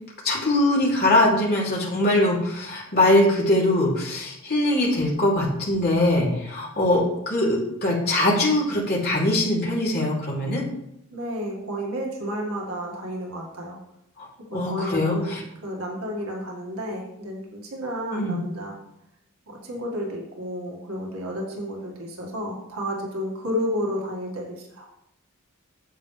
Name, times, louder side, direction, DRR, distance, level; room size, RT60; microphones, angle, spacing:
voice 1, 0.2-10.6 14.2-15.4 18.1-18.4, left 1 dB, 45° left, -4 dB, 2.9 m, -22 dB
voice 2, 11.1-13.8 14.5-15.3 15.6-18.7 19.5-24.9, equal, 75° right, -1 dB, 1.9 m, -31 dB
9.4 x 7.6 x 3.3 m, 0.81 s
head